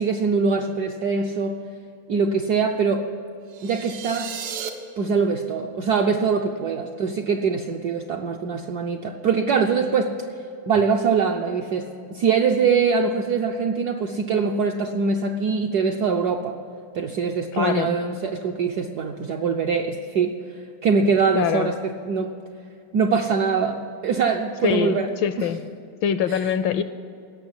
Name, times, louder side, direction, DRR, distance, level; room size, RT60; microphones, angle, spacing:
voice 1, 0.0-1.6 2.1-3.1 3.6-4.3 5.0-10.1 10.7-16.6 16.9-20.4 20.8-22.3 22.9-25.1 25.4-25.5 26.3-26.5, right 5 dB, 70° right, 3 dB, 0.9 m, -23 dB
sound 1, 3.5-4.7, right 7 dB, 85° right, 2.0 m, -34 dB
voice 2, 17.5-18.0 21.3-21.7 24.6-25.6 26.0-26.8, left 8 dB, 75° left, 12 dB, 1.2 m, -23 dB
16.5 x 6.5 x 9.9 m, 2.4 s
omnidirectional pair, 2.4 m